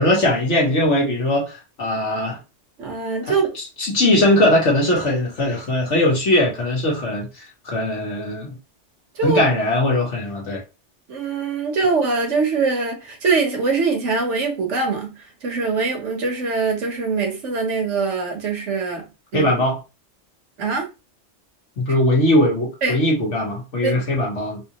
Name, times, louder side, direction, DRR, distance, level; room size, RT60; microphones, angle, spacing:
voice 1, 0.0-2.4 3.8-7.3 7.6-8.5 9.2-10.6 19.3-19.8 21.8-24.6, left 1 dB, 80° left, 1.8 m, -20 dB
voice 2, 2.8-3.6 9.1-9.4 11.1-15.1 15.4-19.1 19.3-19.5 20.6-20.9 22.8-23.0 23.8-23.9, right 4 dB, 80° right, 1.4 m, -22 dB
4.0 x 2.6 x 2.9 m
omnidirectional pair, 1.2 m